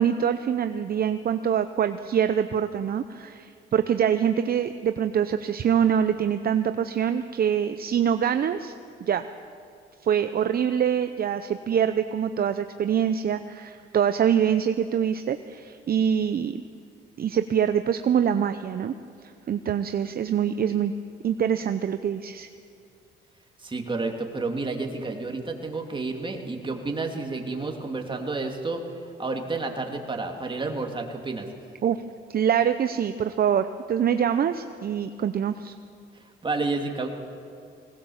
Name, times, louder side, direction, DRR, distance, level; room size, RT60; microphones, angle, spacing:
voice 1, 0.0-8.7 9.0-9.3 10.0-16.6 17.2-18.9 19.5-20.9 21.2-22.5 31.8-32.0 32.3-35.7, right 8 dB, 50° right, 10 dB, 0.7 m, -24 dB
voice 2, 23.6-28.9 29.2-31.5 36.4-37.1, right 3 dB, 25° right, 2 dB, 2.7 m, -30 dB
20.0 x 18.5 x 7.2 m, 2.4 s
cardioid pair, 90°, 20 cm